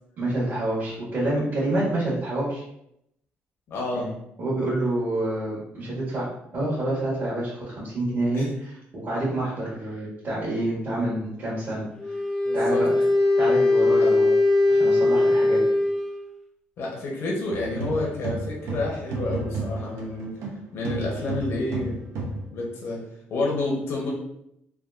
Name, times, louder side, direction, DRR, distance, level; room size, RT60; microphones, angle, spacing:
voice 1, 0.2-2.6 3.9-4.1 4.4-11.8 12.5-12.9 13.4-14.3 14.7-15.6, right 1 dB, 50° right, -9 dB, 1.3 m, -27 dB
voice 2, 3.7-4.1 8.3-8.5 12.5-12.8 14.0-14.1 16.8-20.3 20.7-22.0 22.5-23.0 23.3-24.1, left 2 dB, 65° left, -3 dB, 0.8 m, -29 dB
Wind instrument woodwind instrument, 12.0-16.3, left 2 dB, 10° left, 0.6 m, -20 dB
sound 1, 17.5-20.6 20.8-22.5, right 2 dB, 75° right, 0.7 m, -31 dB
3.4 x 2.3 x 2.4 m, 0.76 s
cardioid pair, 85°, 4 cm